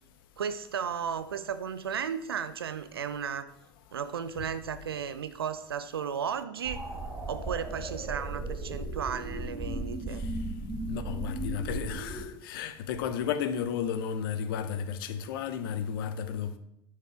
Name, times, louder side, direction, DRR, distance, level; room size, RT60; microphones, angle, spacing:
voice 1, 0.4-3.5 3.9-6.8 7.3-10.2, right 7 dB, 85° right, 0.6 m, -34 dB
sound 1, 6.6-12.2, right 2 dB, 15° right, 3.4 m, -36 dB
voice 2, 10.9-16.6, left 8 dB, 70° left, 0.7 m, -33 dB
9.5 x 4.8 x 4.6 m
hypercardioid pair, 80°, 12 cm